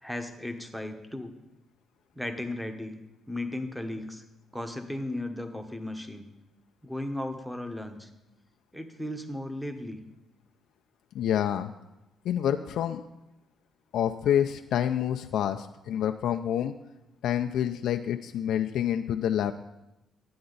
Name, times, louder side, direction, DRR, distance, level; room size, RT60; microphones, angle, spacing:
voice 1, 0.0-1.3 2.1-2.9 3.3-4.2 4.5-6.3 6.8-8.1 8.7-10.0, left 1 dB, ahead, 7 dB, 1.0 m, -35 dB
voice 2, 11.1-11.7 12.2-13.0 13.9-16.7 17.2-19.5, left 10 dB, 75° left, 6 dB, 0.3 m, -27 dB
11.5 x 8.6 x 4.0 m, 0.95 s
cardioid pair, 90°, 0 cm